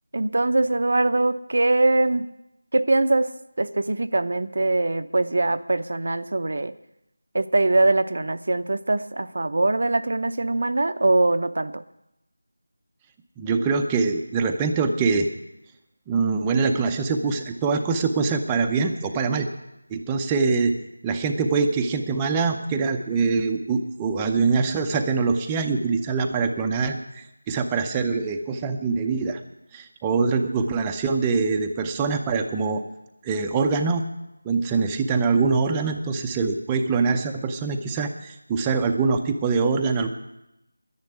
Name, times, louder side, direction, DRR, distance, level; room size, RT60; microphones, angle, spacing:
voice 1, 0.1-2.3 2.7-6.7 7.3-11.8, right 2 dB, 60° right, 11 dB, 0.7 m, -22 dB
voice 2, 13.4-15.3 16.1-19.5 19.9-20.7 21.0-29.4 29.7-32.8 33.2-34.0 34.4-40.1, right 4 dB, 10° right, 3 dB, 0.6 m, -24 dB
10.5 x 10.5 x 9.6 m, 0.88 s
figure-of-eight pair, 170°, 0 cm